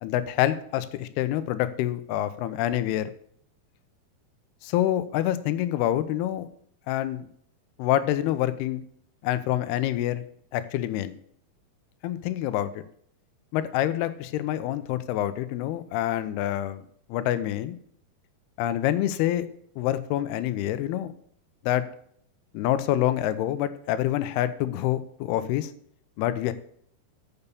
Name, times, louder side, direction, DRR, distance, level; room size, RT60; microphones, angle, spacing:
voice 1, 0.0-3.1 4.6-6.5 6.9-7.3 7.8-8.8 9.2-10.2 10.5-11.2 12.0-12.8 13.5-16.8 17.1-17.8 18.6-19.5 19.8-21.1 21.6-21.9 22.5-25.7 26.2-26.5, left 13 dB, 85° left, 12 dB, 2.6 m, -26 dB
7.0 x 6.8 x 6.8 m, 0.64 s
omnidirectional pair, 4.6 m